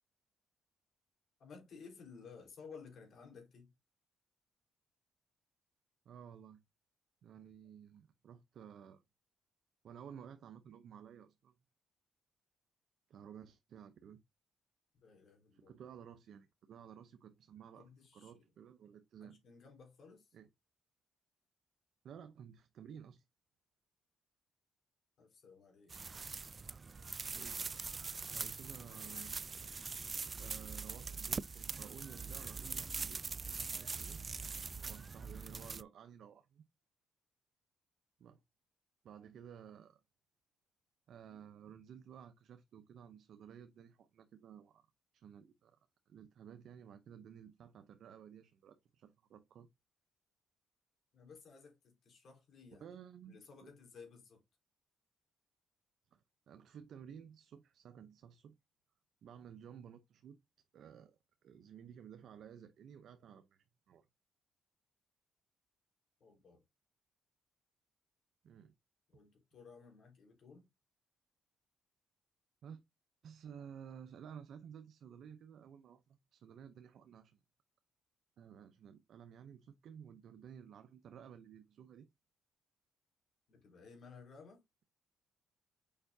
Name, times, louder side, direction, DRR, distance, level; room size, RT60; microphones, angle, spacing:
voice 1, 1.4-3.7 15.0-15.7 17.7-18.4 19.2-20.4 25.2-25.9 51.1-52.9 53.3-54.4 66.2-66.6 69.1-70.7 83.5-84.6, left 5 dB, 60° left, 4.0 m, -56 dB
voice 2, 6.1-6.6 7.2-9.0 9.8-11.5 13.1-14.2 15.5-19.4 20.3-20.5 22.0-23.2 27.3-27.9 28.3-29.5 30.4-34.2 34.9-36.6 38.2-38.4 39.0-40.0 41.1-44.8 45.1-45.8 46.1-49.7 52.8-53.7 56.1-58.6 59.2-60.4 60.7-64.1 68.4-68.7 72.6-72.8 73.2-77.4 78.4-82.1, right 8 dB, 70° right, 0.6 m, -54 dB
sound 1, 25.9-35.8, right 4 dB, 35° right, 0.3 m, -43 dB
6.8 x 5.3 x 2.7 m
cardioid pair, 90°, 0 cm